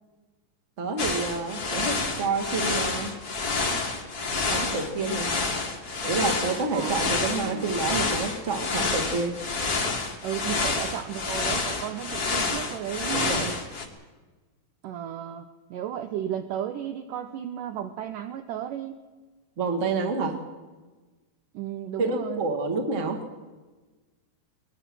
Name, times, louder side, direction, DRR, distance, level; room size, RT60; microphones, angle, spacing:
voice 1, 0.8-3.1 4.5-5.3 6.0-9.4 13.1-13.5 19.6-20.4 22.0-23.2, right 4 dB, 40° right, 3 dB, 1.1 m, -28 dB
sound 1, 1.0-13.8, left 3 dB, 40° left, 1.3 m, -28 dB
voice 2, 6.7-7.7 10.2-13.4 14.8-15.5 15.7-19.0 21.5-22.4, right 10 dB, 85° right, 8 dB, 1.9 m, -34 dB
22.5 x 20.0 x 6.2 m, 1.3 s
omnidirectional pair, 4.9 m